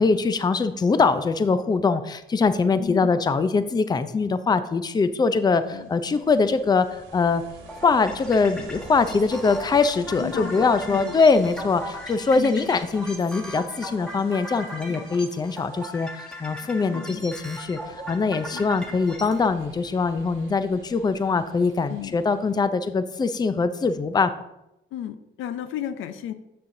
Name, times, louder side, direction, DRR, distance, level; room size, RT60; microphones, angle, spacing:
voice 1, 0.0-7.4 7.8-24.3, left 4 dB, 20° left, 12 dB, 0.4 m, -22 dB
voice 2, 2.8-3.1 5.7-5.9 10.2-11.2 12.3-12.7 14.9-15.1 16.9-17.3 18.5-18.7 21.9-22.2 24.9-26.3, left 10 dB, 85° left, 11 dB, 0.5 m, -34 dB
Ocean, 5.3-22.6, right 4 dB, 85° right, 1.1 m, -49 dB
sound 1, 7.7-19.5, equal, 5° left, 1.3 m, -39 dB
7.6 x 6.7 x 2.6 m, 0.87 s
cardioid pair, 90°, 20 cm